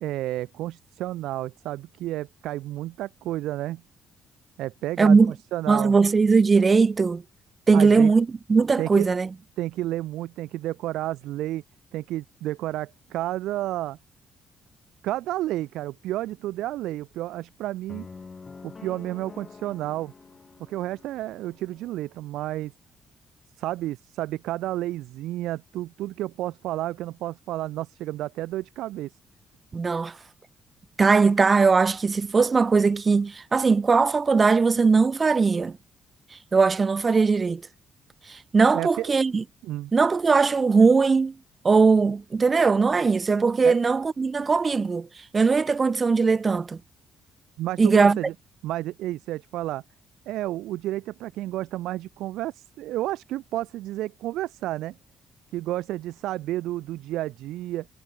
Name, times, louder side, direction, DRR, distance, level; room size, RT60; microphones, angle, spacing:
voice 1, 0.0-3.8 4.6-5.9 7.7-8.1 8.8-9.1 9.6-11.6 11.9-14.0 15.0-18.1 18.6-20.1 20.7-22.7 23.6-29.1 38.7-39.1 39.6-39.9 43.6-43.8 47.6-48.3 48.6-49.8 50.3-54.9 55.5-57.9, right 15 dB, 90° right, 1.5 m, -31 dB
voice 2, 5.0-5.3 5.7-7.2 7.7-9.3 29.7-30.2 31.0-35.8 36.5-37.6 38.3-39.4 39.9-41.3 41.6-45.1 45.3-46.8 47.8-48.2, right 4 dB, 35° right, 0.4 m, -20 dB
sound 1, 17.9-22.0, left 4 dB, 35° left, 7.0 m, -46 dB
cardioid pair, 90°, 0 cm